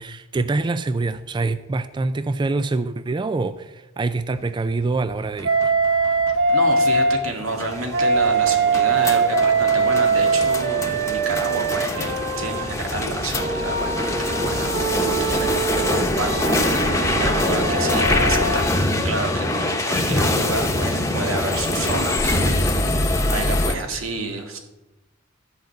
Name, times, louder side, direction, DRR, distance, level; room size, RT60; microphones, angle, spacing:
voice 1, 0.0-5.7, right 3 dB, 25° right, 13 dB, 0.3 m, -25 dB
sound 1, 5.1-23.7, left 1 dB, 15° left, 1.0 m, -24 dB
Wind instrument woodwind instrument, 5.4-7.2 7.9-12.7 13.3-18.6, right 4 dB, 65° right, 1.0 m, -22 dB
voice 2, 6.5-22.6 22.9-24.6, right 2 dB, 90° right, 3 dB, 2.0 m, -30 dB
13.0 x 5.3 x 7.7 m, 1.0 s
head